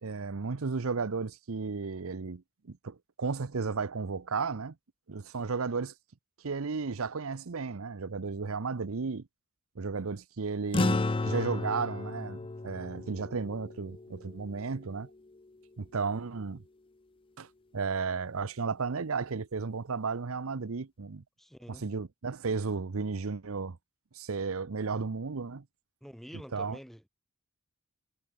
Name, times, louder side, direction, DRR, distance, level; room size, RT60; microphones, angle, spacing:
voice 1, 0.0-2.4 2.7-4.7 5.1-5.9 6.4-9.2 9.8-15.1 15.8-16.6 17.4-17.5 17.7-21.2 21.7-23.8 24.1-25.6 26.5-26.8, right 4 dB, 70° right, 0.7 m, -34 dB
sound 1, 10.7-15.4, left 2 dB, 25° left, 0.4 m, -33 dB
voice 2, 21.4-21.8 26.0-27.1, equal, ahead, 1.7 m, -47 dB
head